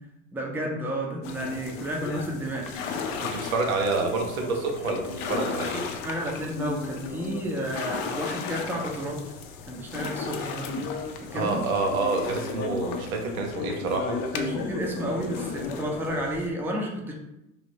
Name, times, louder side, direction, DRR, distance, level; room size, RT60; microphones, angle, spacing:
voice 1, 0.3-2.8 6.0-9.2 9.7-10.9 11.3-11.6 14.3-17.1, right 1 dB, 5° right, -1 dB, 0.5 m, -31 dB
sound 1, 1.2-16.5, left 5 dB, 45° left, 0.5 m, -34 dB
voice 2, 3.2-5.9 11.3-14.2, right 3 dB, 80° right, 2 dB, 0.7 m, -28 dB
3.2 x 2.5 x 2.9 m, 0.90 s
hypercardioid pair, 75°, 41 cm